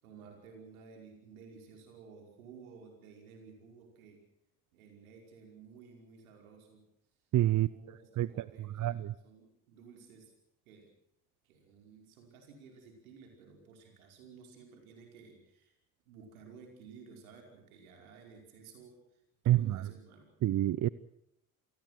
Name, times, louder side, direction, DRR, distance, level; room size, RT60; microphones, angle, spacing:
voice 1, 0.0-4.2 4.7-6.9 7.5-10.3 10.7-10.9 11.4-15.7 16.1-19.0 19.4-20.3, right 5 dB, 80° right, 3 dB, 5.4 m, -54 dB
voice 2, 7.3-7.7 8.2-8.4 8.8-9.1 19.5-19.8 20.4-20.9, right 14 dB, 45° right, 19 dB, 0.8 m, -27 dB
28.0 x 19.0 x 6.2 m, 0.78 s
figure-of-eight pair, 45°, 42 cm